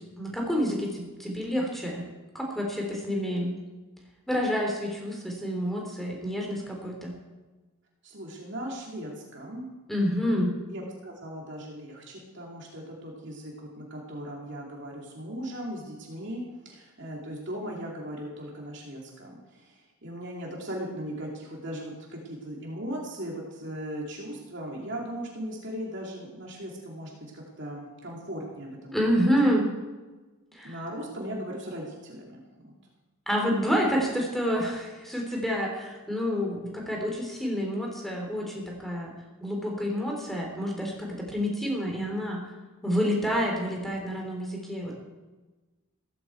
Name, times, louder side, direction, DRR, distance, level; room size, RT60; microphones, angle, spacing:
voice 1, 0.2-2.0 2.3-3.5 4.3-7.1 9.9-10.5 28.9-29.7 30.5-30.8 33.2-39.1 39.4-42.4 42.8-44.9, equal, ahead, -1 dB, 3.6 m, -28 dB
voice 2, 8.0-9.7 10.7-29.2 30.6-32.7, equal, 55° right, -2 dB, 2.7 m, -38 dB
15.5 x 14.5 x 4.6 m, 1.2 s
head